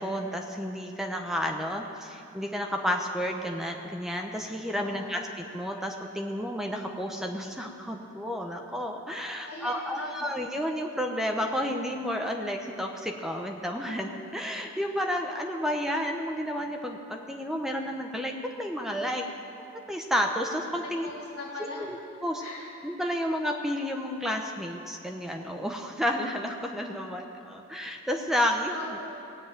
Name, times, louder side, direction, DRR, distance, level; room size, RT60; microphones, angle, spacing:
voice 1, 0.0-19.2 19.6-21.1 21.8-22.4 22.8-29.0, equal, ahead, 2 dB, 0.9 m, -31 dB
voice 2, 4.8-5.1 9.4-10.3 21.0-21.8 22.4-22.6 28.7-29.1, left 2 dB, 60° left, -6 dB, 2.1 m, -40 dB
18.0 x 7.2 x 8.9 m, 2.6 s
head